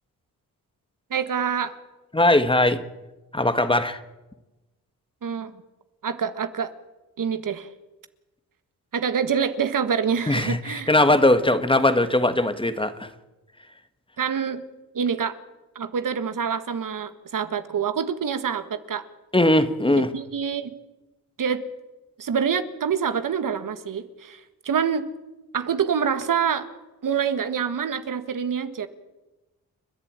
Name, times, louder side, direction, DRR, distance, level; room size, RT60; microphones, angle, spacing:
voice 1, 1.1-1.8 5.2-5.5 6.0-6.7 7.2-7.7 8.9-10.9 14.2-14.6 14.9-15.4 15.7-19.0 20.0-20.7 21.4-21.7 22.2-25.1 25.5-26.7 27.0-28.9, right 7 dB, 60° right, 11 dB, 1.6 m, -26 dB
voice 2, 2.1-2.8 3.3-4.0 10.3-13.1 19.3-20.1, left 1 dB, 15° left, 11 dB, 1.7 m, -20 dB
30.0 x 11.0 x 8.9 m, 1.1 s
cardioid pair, 65°, 36 cm